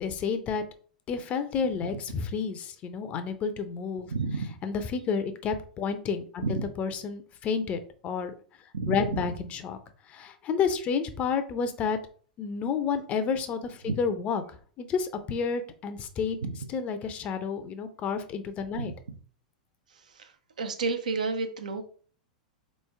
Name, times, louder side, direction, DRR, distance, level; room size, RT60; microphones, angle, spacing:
voice 1, 0.0-0.6 1.1-4.1 4.6-8.3 8.9-9.8 10.1-12.0 12.4-16.4 16.7-18.9, left 6 dB, 30° left, 10 dB, 0.6 m, -30 dB
voice 2, 4.1-4.6 6.4-6.6 8.7-9.3 13.9-14.0 16.4-16.6 18.7-18.9 20.1-20.3 20.6-21.9, right 4 dB, 70° right, 6 dB, 0.7 m, -30 dB
4.1 x 3.2 x 3.4 m, 0.43 s
figure-of-eight pair, 95°, 4 cm